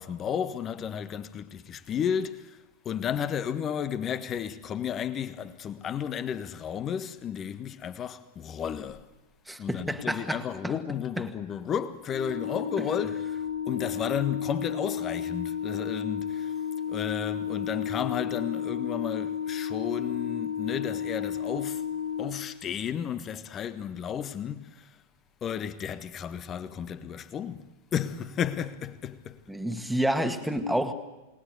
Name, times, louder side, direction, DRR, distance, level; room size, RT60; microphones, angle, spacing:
voice 1, 0.0-2.6 2.8-9.0 9.6-16.5 16.9-21.8 22.2-25.0 25.4-29.4, left 8 dB, 25° left, 1.4 m, -33 dB
voice 2, 9.5-10.7 29.5-30.9, right 1 dB, ahead, 2.1 m, -29 dB
Organ, 12.1-22.9, left 8 dB, 65° left, 3.4 m, -33 dB
28.5 x 20.0 x 8.3 m
figure-of-eight pair, 90°, 0 cm